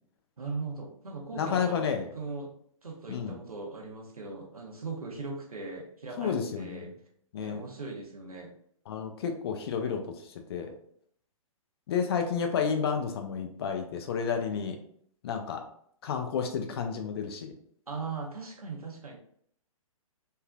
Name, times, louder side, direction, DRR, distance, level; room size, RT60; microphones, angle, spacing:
voice 1, 0.4-2.5 2.8-6.9 7.4-8.5 17.9-19.2, right 4 dB, 80° right, 0 dB, 0.9 m, -39 dB
voice 2, 1.4-2.1 3.1-3.4 6.2-6.9 7.3-7.6 8.9-10.0 10.5-10.7 11.9-14.8 15.2-15.6 16.0-17.5, left 6 dB, 45° left, 5 dB, 0.5 m, -31 dB
3.3 x 2.7 x 2.2 m, 0.63 s
figure-of-eight pair, 125°, 18 cm